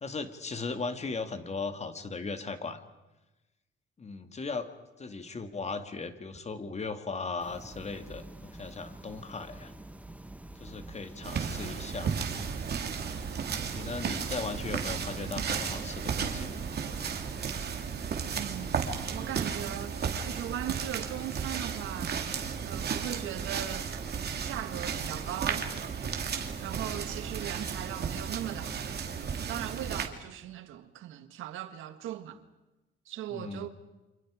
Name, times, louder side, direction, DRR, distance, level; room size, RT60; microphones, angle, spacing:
voice 1, 0.0-2.8 4.0-4.7 5.0-9.7 10.6-12.2 13.7-16.6 33.3-33.7, left 4 dB, 35° left, 2.1 m, -37 dB
sound 1, 7.4-17.6, right 1 dB, 5° right, 1.3 m, -47 dB
sound 2, 11.2-30.1, right 6 dB, 55° right, 2.8 m, -34 dB
voice 2, 18.3-22.1 22.6-23.9 24.4-25.7 26.6-28.9 29.5-32.4 33.0-33.7, right 12 dB, 90° right, 1.6 m, -39 dB
29.0 x 26.0 x 5.0 m
cardioid pair, 90°, 20 cm